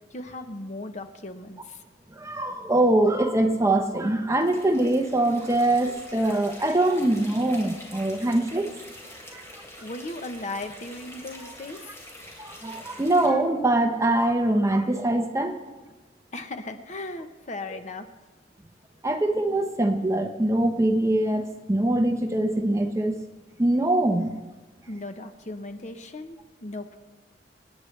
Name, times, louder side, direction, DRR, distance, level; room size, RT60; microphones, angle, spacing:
voice 1, 0.1-1.8 9.8-12.0 16.3-18.1 24.9-27.0, left 2 dB, 40° left, 7 dB, 0.9 m, -37 dB
voice 2, 2.1-8.7 9.3-9.4 12.4-15.6 19.0-23.2 23.6-24.3, right 1 dB, 15° right, 4 dB, 0.9 m, -23 dB
sound 1, 4.4-13.3, left 1 dB, 15° left, 2.9 m, -45 dB
26.5 x 9.6 x 3.3 m, 1.3 s
head